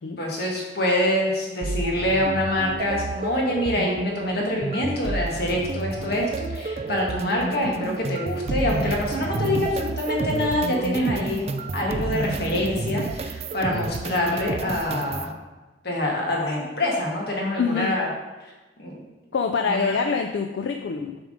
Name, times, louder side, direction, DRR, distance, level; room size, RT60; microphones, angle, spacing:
voice 1, 0.0-15.3 15.8-18.1 18.8-19.0 19.6-19.9, left 1 dB, 60° left, -1 dB, 1.6 m, -25 dB
sound 1, 1.6-15.3, right 3 dB, 35° right, 0.3 m, -30 dB
voice 2, 17.6-17.9 19.3-21.2, left 5 dB, 80° left, 5 dB, 0.4 m, -25 dB
7.3 x 3.6 x 5.1 m, 1.2 s
head